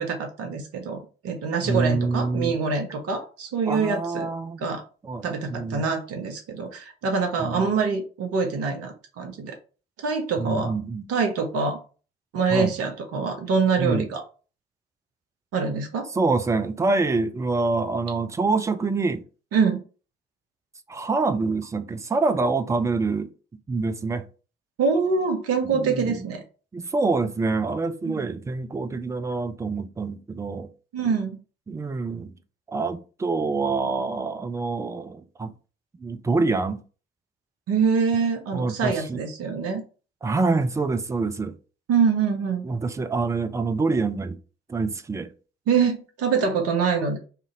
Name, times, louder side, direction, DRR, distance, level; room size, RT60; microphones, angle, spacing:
voice 1, 0.0-4.3 4.6-4.8 5.2-9.5 10.0-10.7 11.1-11.8 12.3-14.2 15.5-16.1 19.5-19.8 24.8-26.4 28.0-28.2 30.9-31.3 37.7-39.8 41.9-42.6 45.7-47.2, right 5 dB, 55° right, 0.9 m, -25 dB
voice 2, 1.6-2.6 3.7-4.6 5.0-5.9 7.4-7.7 10.4-11.1 12.5-12.7 13.8-14.1 16.1-19.2 20.9-23.3 23.7-24.3 25.7-26.2 26.7-30.7 31.7-32.3 32.7-35.5 36.0-36.8 38.5-39.2 40.2-41.6 42.6-44.4 44.7-45.3, right 3 dB, 10° right, 0.3 m, -26 dB
2.8 x 2.5 x 3.9 m
figure-of-eight pair, 45°, 29 cm